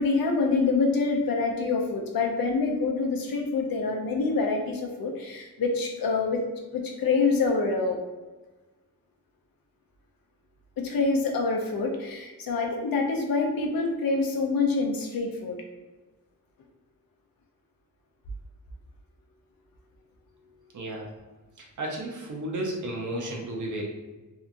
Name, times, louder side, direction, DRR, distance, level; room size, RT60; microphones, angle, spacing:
voice 1, 0.0-6.4 6.7-8.0 10.8-15.6, left 4 dB, 80° left, 2 dB, 0.6 m, -26 dB
voice 2, 20.7-21.1 21.6-23.9, right 1 dB, 60° right, -1 dB, 0.5 m, -33 dB
2.7 x 2.4 x 2.5 m, 1.2 s
wide cardioid pair, 135°, 34 cm